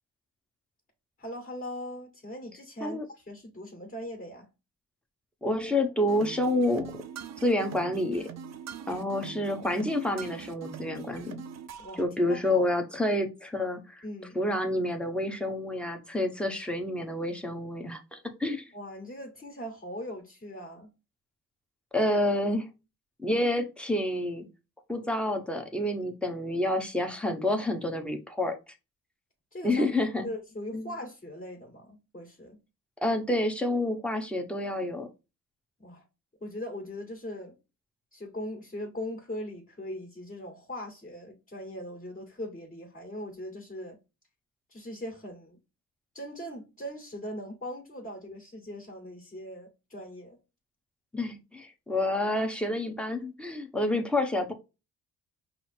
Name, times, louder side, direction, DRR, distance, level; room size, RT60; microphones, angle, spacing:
voice 1, 1.2-4.5 11.8-12.6 14.0-14.4 18.7-20.9 29.5-29.9 30.2-32.6 35.8-36.1 36.4-37.6 38.1-44.0 44.7-45.6 46.1-50.4, equal, 25° left, 1.8 m, -40 dB
voice 2, 5.4-7.0 7.4-8.2 8.9-11.4 12.0-14.0 14.3-18.7 21.9-22.7 23.2-24.4 24.9-28.6 29.6-30.2 30.7-30.9 33.0-35.1 51.1-54.5, left 1 dB, 5° left, 1.0 m, -28 dB
sound 1, 6.1-12.0, right 7 dB, 60° right, 0.6 m, -43 dB
5.5 x 2.1 x 4.4 m
cardioid pair, 90°, 30 cm